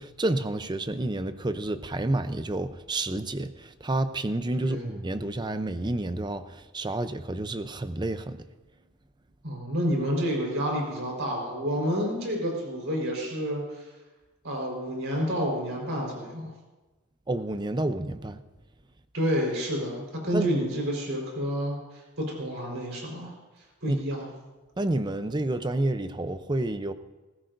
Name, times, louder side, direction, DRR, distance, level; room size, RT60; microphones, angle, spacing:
voice 1, 0.0-8.4 17.3-18.4 20.3-20.5 23.9-24.0 24.8-26.9, right 2 dB, 20° right, 0.6 m, -29 dB
voice 2, 9.4-13.8 14.4-16.5 19.1-21.8 22.2-23.3 23.8-24.3, equal, 65° right, 4.3 m, -29 dB
20.0 x 15.5 x 2.6 m
head